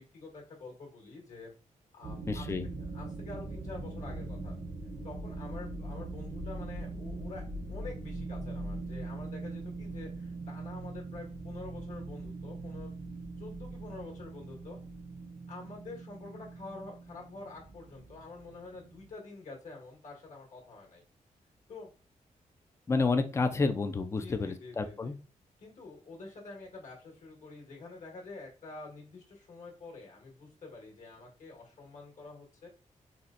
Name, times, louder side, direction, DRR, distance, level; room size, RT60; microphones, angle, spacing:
voice 1, 0.0-1.5 1.9-2.4 2.9-4.6 5.0-7.4 7.7-12.9 13.4-14.8 15.5-21.0 21.7-21.9 24.2-25.1 25.6-32.7, left 3 dB, 70° left, 0 dB, 1.4 m, -47 dB
sound 1, 2.0-19.1, right 2 dB, 50° right, 0.6 m, -41 dB
voice 2, 2.3-2.7 22.9-25.2, left 4 dB, 20° left, 9 dB, 0.3 m, -30 dB
4.1 x 2.2 x 2.4 m, 0.34 s
wide cardioid pair, 140°, 13 cm